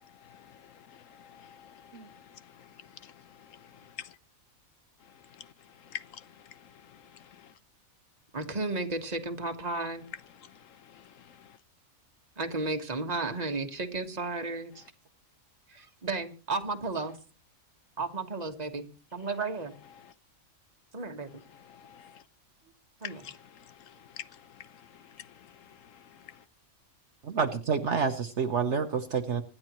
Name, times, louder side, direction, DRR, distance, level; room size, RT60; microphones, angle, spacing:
voice 1, 1.2-2.1 4.0-4.1 5.9-6.2 21.8-22.1 23.0-23.4 24.2-24.3, left 9 dB, 70° left, 1.2 m, -43 dB
voice 2, 8.3-10.1 12.4-14.8 15.7-17.2 18.0-19.7 20.9-21.3 23.0-23.2, right 3 dB, 30° right, 1.6 m, -33 dB
voice 3, 27.2-29.4, right 6 dB, 60° right, 1.3 m, -28 dB
25.0 x 10.5 x 3.1 m
omnidirectional pair, 1.4 m